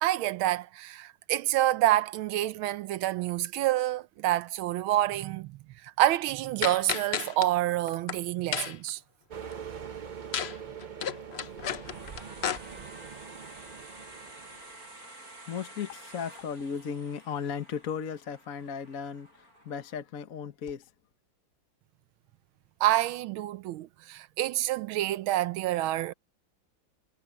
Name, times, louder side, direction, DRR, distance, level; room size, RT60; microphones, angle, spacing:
voice 1, 0.0-5.6 5.8-9.0 22.8-26.1, right 14 dB, 90° right, 1.5 m, -28 dB
sound 1, 6.6-7.5 7.9-8.2 8.5-8.9 10.3-10.6 10.8-12.6, left 8 dB, 80° left, 0.5 m, -32 dB
sound 2, 9.3-14.9, right 7 dB, 65° right, 0.4 m, -43 dB
sound 3, 11.8-20.0, right 2 dB, 45° right, 7.2 m, -50 dB
voice 2, 14.5-20.9, left 7 dB, 45° left, 1.5 m, -36 dB
omnidirectional pair, 2.2 m